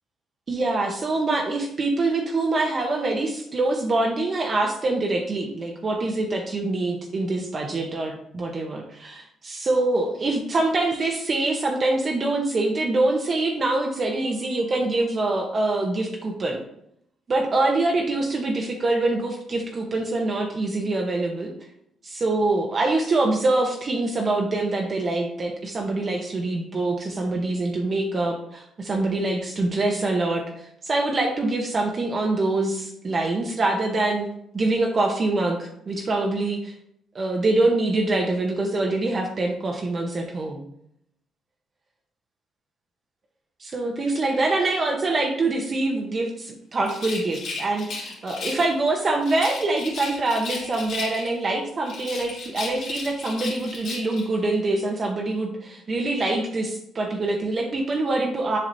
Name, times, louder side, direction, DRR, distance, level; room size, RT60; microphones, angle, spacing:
voice 1, 0.5-16.6 17.3-21.5 22.0-34.3 34.5-36.7 37.1-40.6 43.6-58.6, right 2 dB, 40° right, 1 dB, 0.9 m, -25 dB
Rattle, 46.8-48.8 49.2-51.5 51.8-54.3, left 4 dB, 75° left, 2.5 m, -35 dB
7.5 x 5.7 x 2.7 m, 0.73 s
cardioid pair, 90°, 0 cm